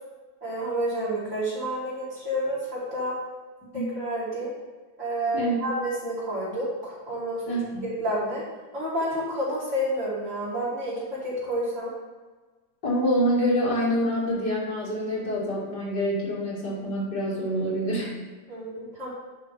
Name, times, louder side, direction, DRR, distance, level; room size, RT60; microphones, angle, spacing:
voice 1, 0.4-3.1 3.7-4.5 5.0-7.5 8.0-8.4 8.7-11.9 18.5-19.1, equal, 45° right, -8 dB, 3.3 m, -29 dB
voice 2, 7.5-7.9 12.8-18.2, equal, 75° left, -6 dB, 3.0 m, -26 dB
10.5 x 5.7 x 3.5 m, 1.3 s
omnidirectional pair, 1.8 m